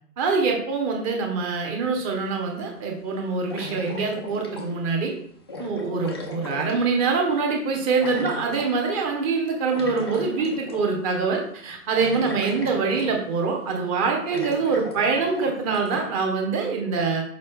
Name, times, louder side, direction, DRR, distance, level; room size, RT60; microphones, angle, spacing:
voice 1, 0.2-5.1 5.6-17.2, right 4 dB, 20° right, 1 dB, 1.2 m, -24 dB
sound 1, 2.1-2.2 3.5-5.0 5.5-7.3 8.0-8.7 9.7-11.0 11.3-11.4 12.0-13.4 13.8-13.9 14.3-16.1, left 2 dB, 15° left, 0.4 m, -37 dB
6.6 x 5.2 x 3.6 m, 0.64 s
hypercardioid pair, 140°, 47 cm